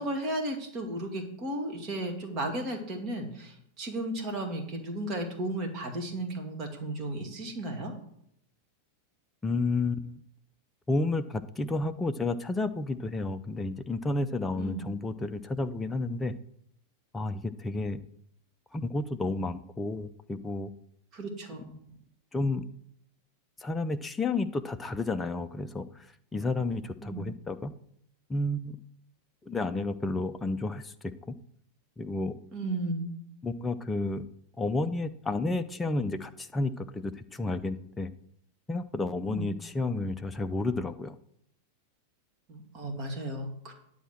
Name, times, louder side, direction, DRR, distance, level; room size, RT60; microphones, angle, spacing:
voice 1, 0.0-7.9 14.6-14.8 21.1-21.7 27.0-27.2 32.5-33.1 39.3-39.5 42.5-43.7, right 1 dB, 35° right, 4 dB, 2.3 m, -34 dB
voice 2, 9.4-10.2 10.9-16.4 17.1-18.0 18.7-20.7 22.3-22.6 23.6-26.1 26.3-27.7 28.3-28.8 29.4-31.3 32.0-32.4 33.4-34.2 34.6-38.1 38.7-41.2, left 2 dB, 15° left, 9 dB, 0.5 m, -31 dB
10.0 x 4.3 x 7.6 m, 0.70 s
figure-of-eight pair, 90°, 0 cm